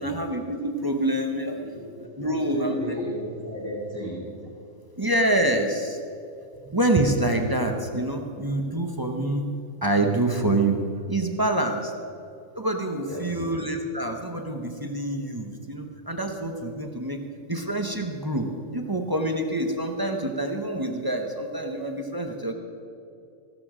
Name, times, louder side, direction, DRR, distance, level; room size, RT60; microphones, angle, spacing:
voice 1, 0.0-1.6 2.2-3.0 5.0-6.0 6.7-9.5 9.8-10.8 11.1-11.9 12.6-17.2 17.5-22.5, right 1 dB, 20° right, 4 dB, 0.9 m, -26 dB
voice 2, 2.2-4.4 13.1-13.5, equal, 10° left, -10 dB, 4.3 m, -33 dB
15.5 x 12.5 x 5.0 m, 2.5 s
omnidirectional pair, 1.4 m